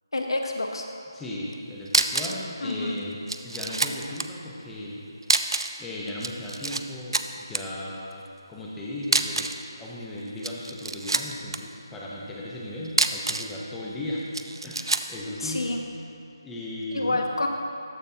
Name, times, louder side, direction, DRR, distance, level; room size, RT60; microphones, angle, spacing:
voice 1, 0.1-0.9 2.6-3.0 15.4-15.8 16.9-17.5, left 2 dB, 75° left, 3 dB, 0.9 m, -28 dB
voice 2, 1.1-5.0 5.8-8.2 8.5-9.5 9.8-14.3 14.6-15.7 16.4-17.2, left 1 dB, 5° left, -6 dB, 0.5 m, -36 dB
sound 1, 1.5-1.6 1.9-2.4 2.7-2.8 3.3-4.3 5.2-5.8 6.1-6.8 7.1-7.6 9.0-9.6 10.3-11.6 12.8-13.6 14.3-15.1, right 3 dB, 75° right, 0.4 m, -26 dB
13.5 x 5.2 x 2.7 m, 2.8 s
figure-of-eight pair, 175°, 2 cm